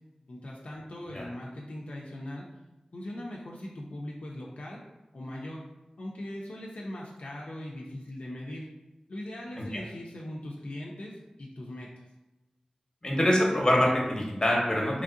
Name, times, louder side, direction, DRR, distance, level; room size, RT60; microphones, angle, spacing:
voice 1, 0.3-2.4 2.9-4.8 5.1-5.6 6.0-8.7 9.1-11.9, left 1 dB, 70° left, -3 dB, 0.4 m, -40 dB
voice 2, 13.0-15.0, left 1 dB, 30° left, -2 dB, 0.7 m, -25 dB
3.0 x 2.6 x 2.4 m, 1.1 s
wide cardioid pair, 65°, 2 cm